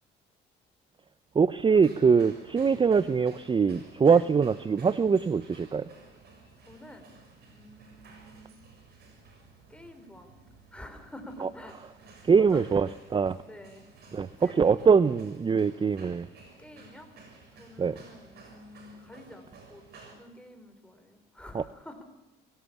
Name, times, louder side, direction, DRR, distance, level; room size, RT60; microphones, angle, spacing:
voice 1, 1.3-5.9 11.4-11.5 12.2-13.4 14.1-16.3 17.8-18.0 21.5-21.6, right 5 dB, 25° right, 15 dB, 0.7 m, -23 dB
sound 1, 1.7-20.2, right 4 dB, 60° right, 7.1 m, -54 dB
voice 2, 6.6-7.1 7.5-8.6 9.7-10.4 10.7-12.1 12.4-13.0 13.4-13.9 14.4-14.9 16.6-17.1 17.4-22.0, left 1 dB, 5° left, 5 dB, 4.8 m, -48 dB
24.0 x 17.0 x 7.3 m, 1.1 s
cardioid pair, 85°, 19 cm